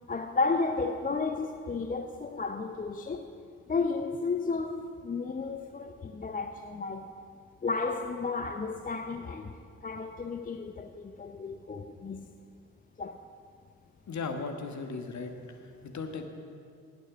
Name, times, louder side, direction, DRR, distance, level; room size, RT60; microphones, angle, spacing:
voice 1, 0.1-3.4 3.7-7.2 7.6-9.6 9.8-12.3 13.0-13.2, left 4 dB, 20° left, 0.6 m, -33 dB
voice 2, 14.1-15.3 15.8-16.3, left 4 dB, 45° left, 1.5 m, -36 dB
10.5 x 9.2 x 7.0 m
figure-of-eight pair, 40°, 41 cm